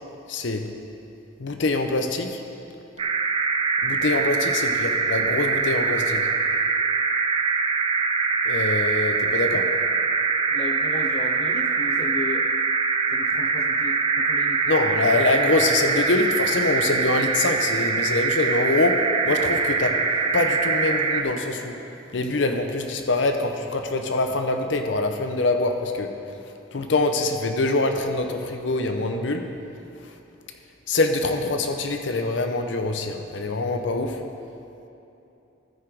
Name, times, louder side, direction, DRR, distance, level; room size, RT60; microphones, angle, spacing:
voice 1, 0.3-0.6 1.4-2.4 3.8-6.3 8.5-9.7 14.7-20.0 20.3-21.8 22.1-26.1 26.7-29.5 30.9-34.2, left 2 dB, 75° left, 5 dB, 0.7 m, -24 dB
sound 1, 3.0-21.2, right 4 dB, 30° right, 0.4 m, -23 dB
voice 2, 10.5-12.5 13.1-14.6, left 2 dB, 35° left, 4 dB, 0.4 m, -34 dB
14.0 x 4.9 x 4.8 m, 2.9 s
head